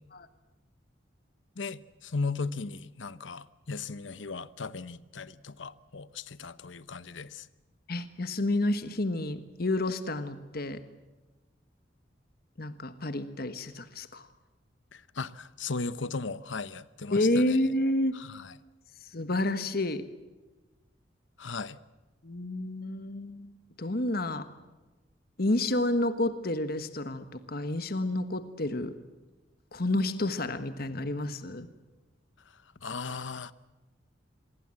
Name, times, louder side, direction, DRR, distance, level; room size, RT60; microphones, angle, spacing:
voice 1, 1.6-7.5 14.9-17.7 18.1-18.6 21.4-21.8 32.8-33.5, left 4 dB, 80° left, 0.9 m, -37 dB
voice 2, 7.9-10.8 12.6-14.3 17.1-18.2 19.1-20.0 22.2-23.5 23.8-24.5 25.4-28.9 29.7-31.7, left 1 dB, 55° left, 1.4 m, -29 dB
26.5 x 22.0 x 7.7 m
head